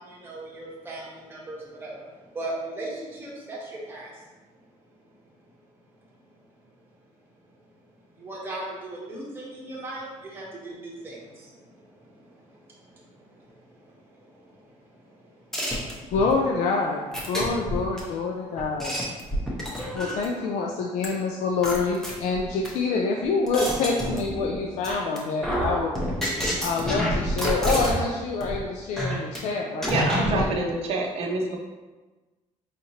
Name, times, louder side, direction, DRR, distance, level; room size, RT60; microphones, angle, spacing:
voice 1, 0.0-4.3 4.8-5.3 6.1-6.8 7.6-7.7 8.1-16.1 19.2-20.0 24.7-24.8 25.1-25.4 26.3-26.7 28.4-28.8 29.1-29.6 31.4-31.5, right 2 dB, 15° right, -5 dB, 0.9 m, -40 dB
sound 1, 15.5-16.3 17.1-18.0 18.6-20.4 21.0-21.1 21.6-22.7 23.2-24.6 24.8-25.2 25.4-28.1 28.4-28.6 29.0-29.4 29.8-30.5, equal, 5° left, 0.6 m, -28 dB
voice 2, 16.1-18.9 19.9-25.9 26.6-29.9 30.2-30.5, left 4 dB, 70° left, 0 dB, 0.4 m, -26 dB
voice 3, 29.9-31.6, right 3 dB, 55° right, 0 dB, 0.6 m, -27 dB
4.9 x 2.9 x 2.8 m, 1.2 s
cardioid pair, 175°, 13 cm